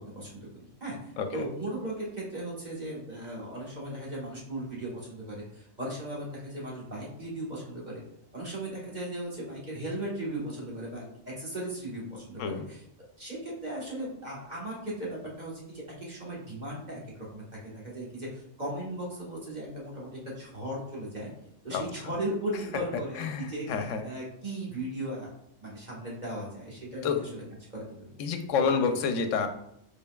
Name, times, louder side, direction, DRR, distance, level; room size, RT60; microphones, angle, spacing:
voice 1, 0.1-8.0 8.3-12.8 13.2-21.3 21.6-25.3 25.6-27.4 27.7-28.1 28.6-28.7, right 1 dB, 35° right, -5 dB, 1.4 m, -37 dB
voice 2, 1.2-1.5 12.4-12.6 21.7-21.8 23.2-24.0 27.0-27.2 28.2-29.5, left 5 dB, 80° left, 7 dB, 1.0 m, -28 dB
5.3 x 4.3 x 2.3 m, 0.74 s
omnidirectional pair, 1.3 m